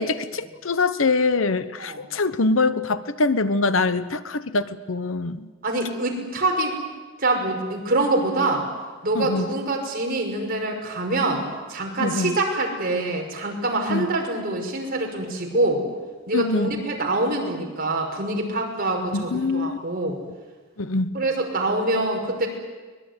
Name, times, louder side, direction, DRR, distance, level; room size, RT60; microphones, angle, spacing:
voice 1, 0.0-5.5 9.1-9.5 12.0-12.4 13.9-14.1 16.3-16.7 19.1-19.8 20.8-21.2, left 3 dB, 85° left, 13 dB, 1.1 m, -24 dB
voice 2, 5.6-6.8 7.2-8.6 9.0-11.4 11.7-15.8 16.3-20.2 21.1-22.5, right 2 dB, 50° right, 1 dB, 5.9 m, -25 dB
23.5 x 21.0 x 9.8 m, 1.4 s
head